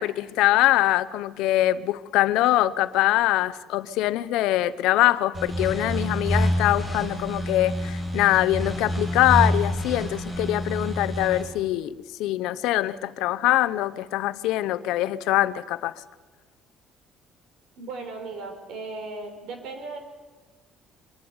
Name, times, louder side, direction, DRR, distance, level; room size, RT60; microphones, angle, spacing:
voice 1, 0.0-11.9 12.2-15.9, left 15 dB, 85° left, 15 dB, 0.7 m, -23 dB
sound 1, 5.3-11.4, equal, 10° right, 6.2 m, -27 dB
voice 2, 17.8-20.0, right 3 dB, 70° right, 6 dB, 4.2 m, -36 dB
24.0 x 11.5 x 9.5 m, 1.3 s
cardioid pair, 160°, 0 cm